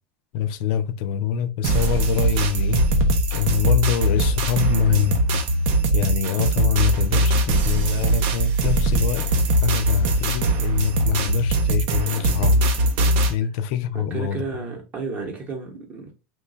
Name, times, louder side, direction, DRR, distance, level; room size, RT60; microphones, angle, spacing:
voice 1, 0.3-2.9 3.3-5.2 5.9-9.3 9.6-12.6 13.3-14.4, left 8 dB, 55° left, 0.4 m, -25 dB
sound 1, 1.6-13.3, right 1 dB, 55° right, 0.6 m, -21 dB
voice 2, 13.9-16.1, right 4 dB, 25° right, 0.8 m, -32 dB
3.1 x 2.2 x 3.8 m
supercardioid pair, 170°, 6 cm